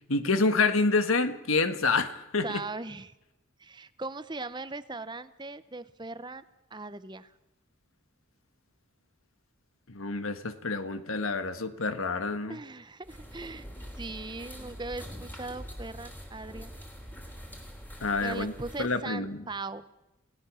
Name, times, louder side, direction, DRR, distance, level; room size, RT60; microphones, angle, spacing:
voice 1, 0.1-2.6 9.9-12.6 18.0-18.5 18.8-19.4, left 3 dB, 85° left, 10 dB, 1.6 m, -27 dB
voice 2, 2.4-3.1 3.6-6.4 6.7-7.3 12.5-13.7 14.0-16.7 18.2-19.9, right 3 dB, 20° right, 13 dB, 0.8 m, -39 dB
sound 1, 13.0-19.0, equal, 10° left, 3.0 m, -44 dB
28.5 x 17.5 x 6.4 m, 0.95 s
head